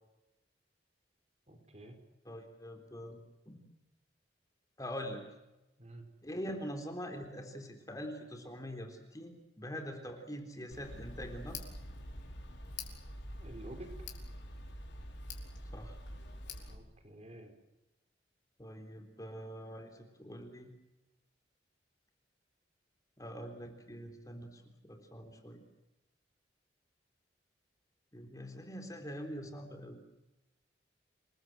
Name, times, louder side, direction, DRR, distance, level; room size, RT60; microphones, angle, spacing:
voice 1, 1.5-2.0 5.8-6.0 13.4-13.9 16.7-17.6, right 1 dB, 35° right, 6 dB, 4.9 m, -50 dB
voice 2, 2.3-3.2 3.5-3.7 4.8-5.2 6.2-11.6 15.7-16.0 18.6-20.7 23.2-25.6 28.1-30.0, equal, 20° left, 5 dB, 3.7 m, -44 dB
Tick, 10.7-16.7, left 1 dB, 85° left, 5.0 m, -45 dB
28.5 x 21.0 x 7.9 m, 0.97 s
head